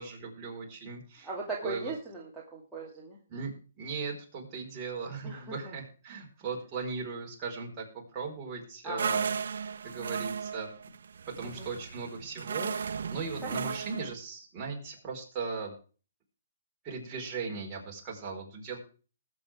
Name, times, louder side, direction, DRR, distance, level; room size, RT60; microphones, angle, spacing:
voice 1, 0.0-1.3 1.6-1.9 3.3-3.5 3.8-10.7 11.4-15.7 16.8-18.8, right 4 dB, 20° right, -2 dB, 4.6 m, -38 dB
voice 2, 1.2-3.2 5.2-5.7 8.8-9.2 11.6-11.7 13.4-13.7, right 2 dB, 5° right, -7 dB, 2.5 m, -39 dB
sound 1, 9.0-14.1, right 6 dB, 70° right, 0.8 m, -35 dB
20.0 x 8.2 x 3.6 m, 0.37 s
hypercardioid pair, 160°, 0 cm